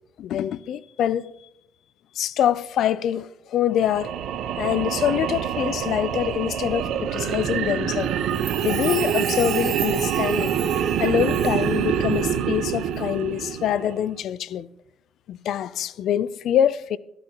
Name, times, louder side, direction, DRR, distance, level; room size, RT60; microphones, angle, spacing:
voice 1, 0.2-1.3 2.2-4.1 4.6-8.1 8.6-10.5 11.0-14.7 15.3-17.0, left 10 dB, 75° left, 0.5 m, -25 dB
sound 1, 3.8-14.1, right 9 dB, 80° right, 0.9 m, -26 dB
Chime, 8.2-11.8 12.1-12.2, right 8 dB, 65° right, 1.8 m, -36 dB
12.5 x 12.0 x 3.0 m
cardioid pair, 90°, 0 cm